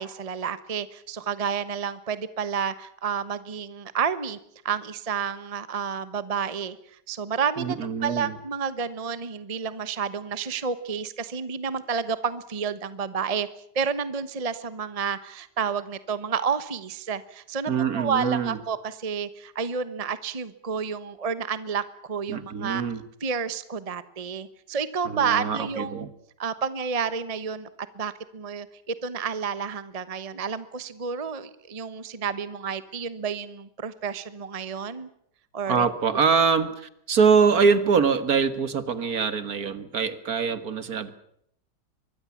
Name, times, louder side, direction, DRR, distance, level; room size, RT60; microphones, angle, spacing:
voice 1, 0.0-4.4 4.6-6.8 7.1-7.8 8.0-13.5 13.7-22.8 23.2-26.0 26.4-27.7 27.9-35.1 35.5-35.9, right 6 dB, 25° right, 13 dB, 1.0 m, -30 dB
voice 2, 7.6-8.3 17.7-18.6 22.3-23.0 25.1-26.1 35.7-41.1, right 5 dB, 60° right, 13 dB, 2.0 m, -24 dB
24.5 x 21.5 x 7.2 m, 0.72 s
omnidirectional pair, 1.8 m